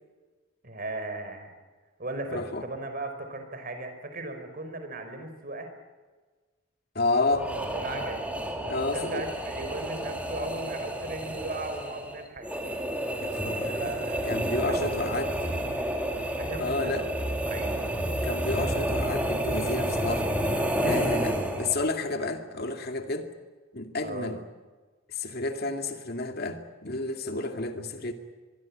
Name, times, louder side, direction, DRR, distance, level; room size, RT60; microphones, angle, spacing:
voice 1, 0.6-1.6 2.0-5.7 7.5-8.2 8.6-12.5 13.6-14.4 14.6-15.2 15.7-15.9 16.4-17.1 17.5-17.9 20.8-21.0 24.0-24.3, right 2 dB, 45° right, 7 dB, 4.8 m, -37 dB
voice 2, 2.3-2.7 6.9-7.5 8.7-9.2 13.2-13.9 14.3-15.3 16.6-17.1 18.2-20.3 20.8-23.3 23.7-24.4 25.1-28.1, left 2 dB, 50° left, 5 dB, 2.3 m, -30 dB
sound 1, 7.3-21.9, right 1 dB, 5° right, 3.0 m, -30 dB
24.0 x 23.0 x 8.6 m, 1.4 s
head